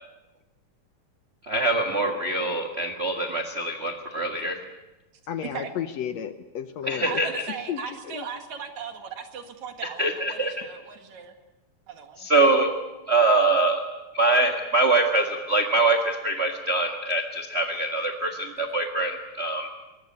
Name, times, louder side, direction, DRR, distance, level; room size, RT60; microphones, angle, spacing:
voice 1, 1.5-4.6 6.8-7.3 10.0-10.5 12.2-12.7 13.1-13.8 14.1-19.7, right 2 dB, 30° right, 4 dB, 1.1 m, -23 dB
voice 2, 5.3-7.2 7.7-7.8 8.1-8.3, left 9 dB, 70° left, 10 dB, 1.8 m, -32 dB
voice 3, 7.1-11.3 11.9-12.3, right 6 dB, 65° right, 6 dB, 3.0 m, -37 dB
23.5 x 20.0 x 8.5 m, 1.0 s
omnidirectional pair, 3.7 m